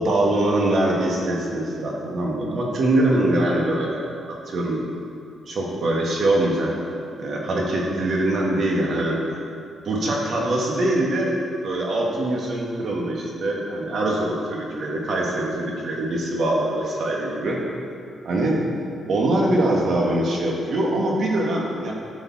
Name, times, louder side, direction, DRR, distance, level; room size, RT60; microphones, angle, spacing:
voice 1, 0.0-4.8 5.5-6.9 7.2-9.2 9.8-11.3 11.6-17.6 18.2-18.6 19.1-21.9, right 1 dB, 55° right, -2 dB, 2.0 m, -23 dB
13.0 x 7.2 x 4.3 m, 2.3 s
cardioid pair, 140°, 0 cm